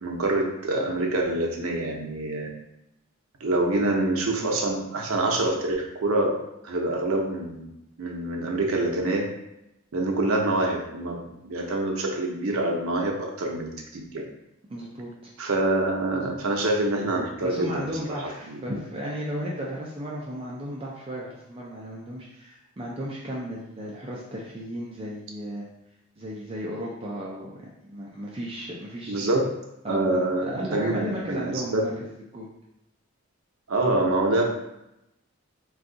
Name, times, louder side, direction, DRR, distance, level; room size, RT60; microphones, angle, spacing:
voice 1, 0.0-2.5 3.4-6.3 6.6-7.7 8.0-9.3 9.9-14.2 15.4-18.2 18.5-18.6 29.1-29.5 29.9-31.9 33.7-34.4, right 2 dB, 85° right, 1 dB, 0.6 m, -26 dB
voice 2, 14.7-15.3 17.4-25.7 26.2-27.5 27.8-29.3 29.8-31.9 32.3-32.5, equal, 25° right, -4 dB, 0.4 m, -34 dB
2.6 x 2.3 x 3.7 m, 0.86 s
head